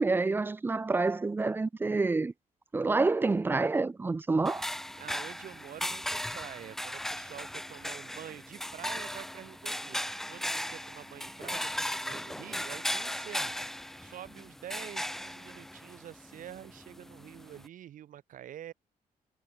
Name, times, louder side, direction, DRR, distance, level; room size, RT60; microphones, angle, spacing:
voice 1, 0.0-2.3 2.7-4.7, right 3 dB, 15° right, 0.5 m, -28 dB
sound 1, 4.5-17.7, equal, ahead, 1.7 m, -37 dB
voice 2, 4.9-13.5 14.0-18.7, right 11 dB, 65° right, 5.4 m, -47 dB
cardioid pair, 180°, 15 cm